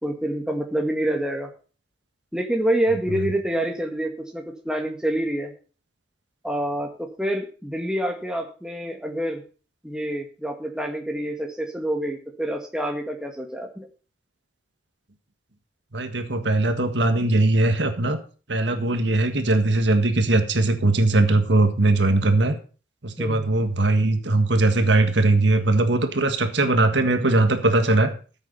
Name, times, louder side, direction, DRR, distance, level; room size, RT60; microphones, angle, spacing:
voice 1, 0.0-1.5 2.3-5.5 6.4-9.4 9.8-13.9 23.2-23.5, right 1 dB, 5° right, 2 dB, 2.0 m, -27 dB
voice 2, 15.9-18.2 18.5-22.6 23.0-28.1, right 2 dB, 70° right, 7 dB, 1.7 m, -20 dB
14.5 x 8.1 x 5.6 m, 0.37 s
head